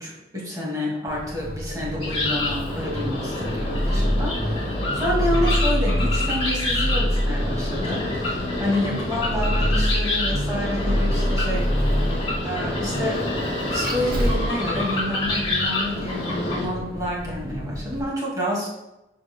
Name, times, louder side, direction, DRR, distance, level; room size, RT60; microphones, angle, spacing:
voice 1, 0.0-12.0 12.4-13.2 13.7-18.7, left 1 dB, 20° right, -4 dB, 2.0 m, -29 dB
Vehicle, 1.1-18.0, equal, 55° right, 1.3 m, -27 dB
sound 1, 2.0-16.7, left 2 dB, 30° left, 2.5 m, -28 dB
11.5 x 4.7 x 2.2 m, 0.93 s
head